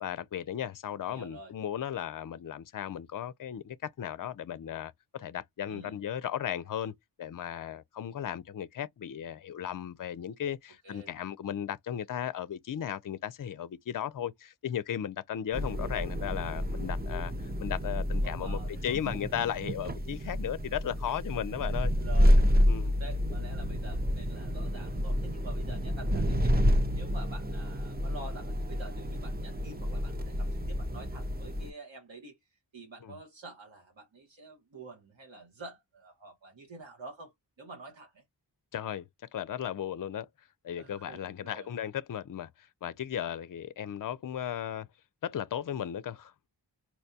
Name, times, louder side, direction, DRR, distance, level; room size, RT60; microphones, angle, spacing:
voice 1, 0.0-6.9 7.2-17.3 17.6-21.9 22.7-22.9 33.0-33.1 38.7-40.3 40.6-44.9 45.2-46.5, left 10 dB, 50° left, 0.4 m, -36 dB
voice 2, 1.1-1.5 5.7-6.0 10.8-11.1 18.1-19.0 21.5-22.4 22.8-26.6 26.9-38.2 40.7-41.7, right 2 dB, 85° right, 1.1 m, -48 dB
sound 1, 15.5-31.7, equal, 20° right, 0.6 m, -29 dB
4.4 x 2.2 x 2.7 m
wide cardioid pair, 40°, 44 cm